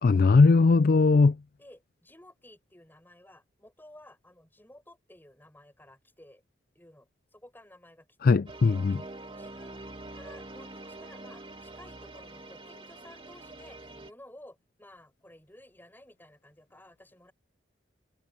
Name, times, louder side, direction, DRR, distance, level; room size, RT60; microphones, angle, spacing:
voice 1, 0.0-1.4 8.2-9.0, left 4 dB, 50° left, 0.4 m, -19 dB
voice 2, 1.6-6.4 6.8-8.8 9.3-17.3, left 1 dB, 10° left, 7.2 m, -54 dB
sound 1, 8.5-14.1, right 2 dB, 30° right, 2.2 m, -45 dB
head